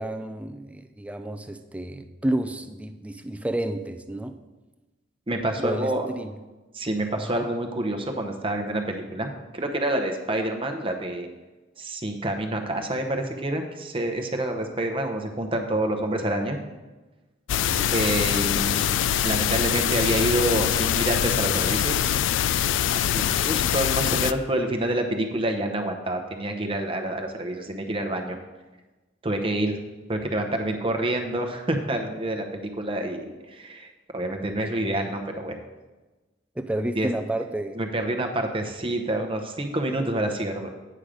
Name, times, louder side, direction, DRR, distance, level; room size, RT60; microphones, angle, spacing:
voice 1, 0.0-4.4 5.6-6.3 7.2-7.5 17.7-17.9 36.6-37.8, right 1 dB, 5° right, 8 dB, 0.4 m, -30 dB
voice 2, 5.3-6.1 6.7-11.3 11.8-16.6 17.9-18.9 19.2-22.1 22.9-28.4 29.2-29.7 30.1-33.9 34.1-35.6 36.9-37.1 37.8-40.7, right 1 dB, 30° right, 4 dB, 0.8 m, -27 dB
sound 1, 17.5-24.3, left 10 dB, 70° left, 0.3 m, -24 dB
8.7 x 6.4 x 5.0 m, 1.2 s
head